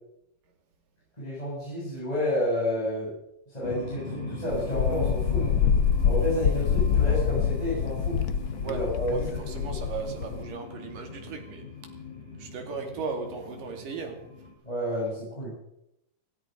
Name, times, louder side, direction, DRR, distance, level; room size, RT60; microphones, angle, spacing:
voice 1, 1.2-3.2 3.5-5.6 6.0-8.2 8.6-9.5 10.0-10.1 14.6-15.5, equal, 10° left, 7.5 m, -30 dB
sound 1, 3.6-14.5, left 4 dB, 60° left, 6.3 m, -40 dB
Wind, 4.5-10.4, left 7 dB, 80° left, 1.1 m, -26 dB
voice 2, 8.6-11.7 12.3-14.3, right 5 dB, 85° right, 4.2 m, -37 dB
16.5 x 16.0 x 5.3 m
omnidirectional pair, 3.7 m